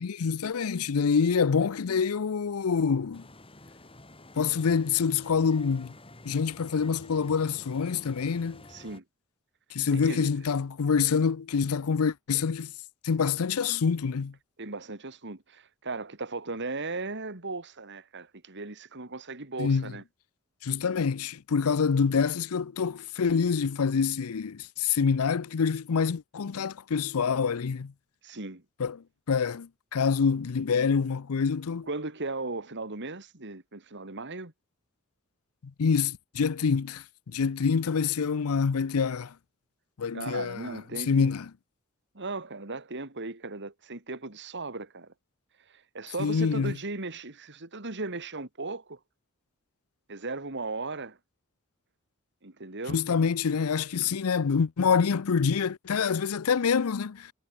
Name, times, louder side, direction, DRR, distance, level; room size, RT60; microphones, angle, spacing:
voice 1, 0.0-3.2 4.4-5.9 6.2-8.6 9.7-12.7 13.0-14.3 19.6-19.9 20.6-27.9 28.8-31.9 35.8-39.3 40.0-41.5 46.2-46.7 52.9-57.3, left 6 dB, 85° left, 0.5 m, -26 dB
sound 1, 3.1-9.0, left 2 dB, 25° left, 7.8 m, -50 dB
voice 2, 8.7-9.0 9.9-10.3 14.6-20.0 28.2-28.6 31.9-34.5 40.1-41.3 42.1-45.1 45.7-49.0 50.1-51.2 52.4-53.1, right 3 dB, 55° right, 3.1 m, -37 dB
head